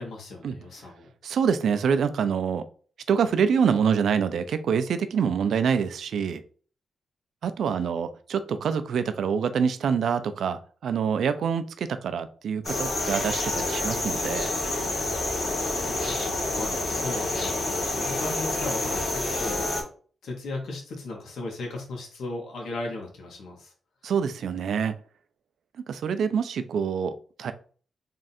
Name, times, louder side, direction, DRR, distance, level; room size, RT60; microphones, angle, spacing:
voice 1, 0.0-1.1 15.7-17.6 17.9-19.6 20.2-23.7, left 2 dB, 80° left, 0 dB, 1.2 m, -36 dB
voice 2, 1.2-2.6 3.1-6.4 7.4-14.5 24.0-24.9 25.9-27.5, right 7 dB, 75° right, 11 dB, 0.4 m, -26 dB
sound 1, 12.6-19.8, left 2 dB, 50° left, 1.6 m, -28 dB
3.6 x 2.5 x 4.1 m, 0.42 s
wide cardioid pair, 120°, 0 cm